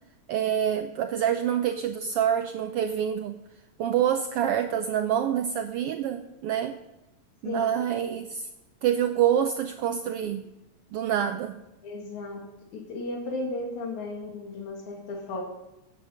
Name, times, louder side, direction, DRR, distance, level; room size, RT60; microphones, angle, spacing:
voice 1, 0.3-3.3 3.8-6.8 7.4-8.5 8.8-10.4 10.9-11.6, right 9 dB, 90° right, 8 dB, 1.3 m, -26 dB
voice 2, 7.4-7.8 11.8-12.4 12.7-15.4, left 2 dB, 85° left, 1 dB, 3.5 m, -34 dB
15.0 x 9.2 x 5.7 m, 0.96 s
omnidirectional pair, 3.3 m